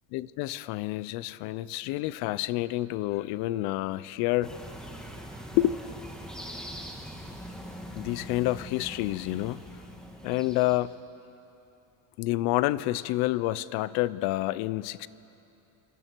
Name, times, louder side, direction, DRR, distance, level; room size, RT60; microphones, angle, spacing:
voice 1, 0.1-4.5 5.5-5.8 7.9-9.6 10.2-10.9 12.2-15.1, left 17 dB, 75° left, 18 dB, 0.6 m, -28 dB
sound 1, 4.4-10.8, equal, ahead, 1.8 m, -42 dB
27.0 x 24.0 x 4.6 m, 2.9 s
cardioid pair, 160°, 38 cm